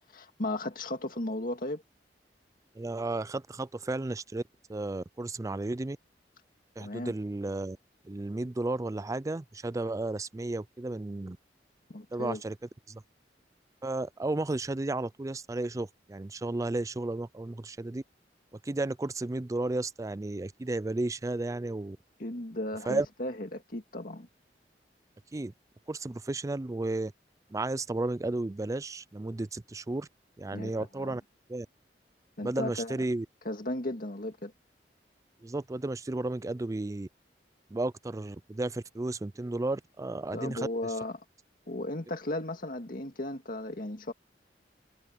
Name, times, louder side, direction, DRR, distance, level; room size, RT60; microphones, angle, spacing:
voice 1, 0.1-1.8 6.8-7.1 11.9-12.4 22.2-24.3 30.5-31.2 32.4-32.9 33.5-34.5 40.3-41.2 41.7-44.1, left 1 dB, 55° left, 2.0 m, -35 dB
voice 2, 2.7-4.4 4.7-6.0 6.8-7.8 8.0-11.4 12.1-13.0 13.8-18.0 18.6-22.0 22.9-23.1 25.3-25.5 25.9-27.1 27.5-30.1 30.4-31.2 31.5-31.7 32.4-33.3 35.4-37.1 37.7-40.7, right 2 dB, 20° right, 0.4 m, -33 dB
head